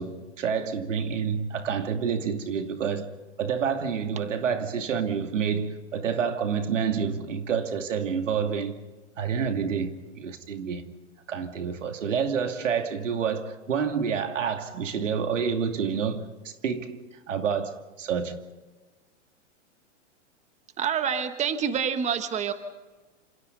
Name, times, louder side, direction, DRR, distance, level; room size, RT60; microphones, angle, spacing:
voice 1, 0.0-3.1 3.4-8.8 9.2-10.9 11.3-17.0 17.3-18.4, right 6 dB, 90° right, 2.7 m, -28 dB
voice 2, 20.8-22.5, right 7 dB, 20° right, 1.4 m, -27 dB
27.5 x 27.5 x 4.0 m
hypercardioid pair, 135°, 36 cm